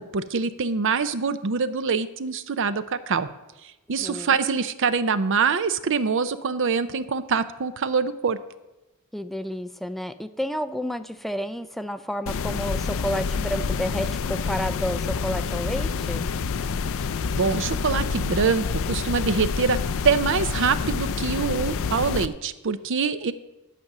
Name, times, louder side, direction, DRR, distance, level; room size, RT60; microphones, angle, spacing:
voice 1, 0.0-3.3 3.6-8.4 17.3-19.8 20.0-23.3, right 5 dB, 60° right, 13 dB, 0.6 m, -24 dB
voice 2, 4.0-4.4 9.1-16.3, equal, ahead, 10 dB, 0.4 m, -30 dB
sound 1, 12.3-22.3, left 5 dB, 65° left, 0.4 m, -27 dB
11.5 x 5.2 x 7.3 m, 1.0 s
head